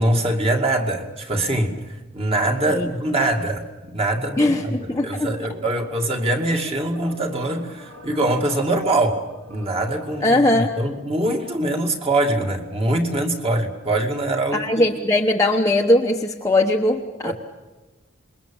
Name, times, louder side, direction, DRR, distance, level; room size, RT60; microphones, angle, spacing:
voice 1, 0.0-1.8 2.1-14.6 17.2-17.3, right 1 dB, 25° right, 3 dB, 2.3 m, -23 dB
voice 2, 4.4-5.3 10.2-10.7 14.5-17.3, left 1 dB, 15° left, 0 dB, 1.0 m, -20 dB
sound 1, 4.8-11.2, left 1 dB, 85° right, 4.3 m, -44 dB
27.0 x 22.0 x 7.1 m, 1.2 s
head